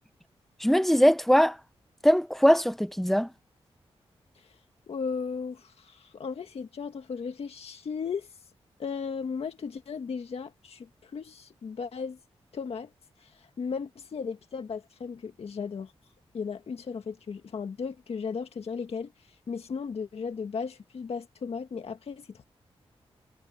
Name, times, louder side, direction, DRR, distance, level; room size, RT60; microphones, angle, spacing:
voice 1, 0.6-1.6 2.0-3.3, equal, ahead, 0.8 m, -21 dB
voice 2, 4.9-8.3 8.8-12.2 12.5-12.9 13.2-15.9 16.3-22.5, left 5 dB, 70° left, 1.8 m, -36 dB
wide cardioid pair, 90°, 11 cm